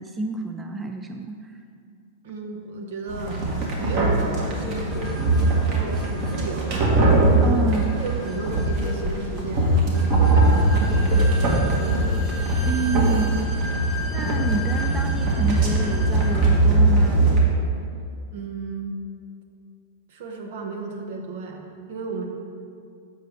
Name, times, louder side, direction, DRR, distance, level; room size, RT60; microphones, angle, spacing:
voice 1, 0.0-1.5 7.4-7.8 12.7-13.4 14.1-17.3, right 2 dB, 15° right, 5 dB, 0.4 m, -29 dB
voice 2, 2.2-3.4 3.8-5.1 5.5-6.9 7.4-7.6 7.9-12.1 18.3-19.0 20.1-22.3, right 3 dB, 65° right, 2 dB, 1.0 m, -34 dB
sound 1, 3.1-17.4, right 2 dB, 45° right, 1.5 m, -21 dB
sound 2, 4.6-16.6, left 2 dB, 5° left, 1.0 m, -38 dB
7.4 x 5.6 x 3.6 m, 2.4 s
hypercardioid pair, 115°, 0 cm